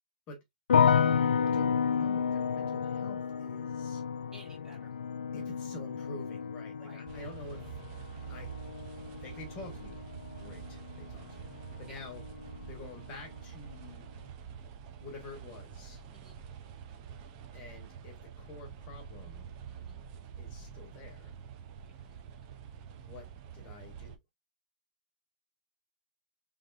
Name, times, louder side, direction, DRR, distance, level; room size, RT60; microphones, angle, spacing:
sound 1, 0.7-11.8 12.0-12.8, left 7 dB, 85° left, 0.5 m, -31 dB
voice 1, 0.8-1.2 1.5-4.0 5.3-7.8 8.3-8.5 9.1-10.0 10.4-11.5 11.8-12.2 12.6-14.0 15.0-16.0 17.5-19.5 20.4-21.3 22.9-24.2, left 2 dB, 25° left, 1.5 m, -48 dB
voice 2, 4.3-4.9 6.8-7.0 11.9-12.0 16.1-16.4 19.7-20.0 21.8-21.9, right 2 dB, 15° right, 1.5 m, -55 dB
sound 2, 7.1-24.1, right 8 dB, 35° right, 0.8 m, -47 dB
3.5 x 3.5 x 2.6 m
hypercardioid pair, 140°, 5 cm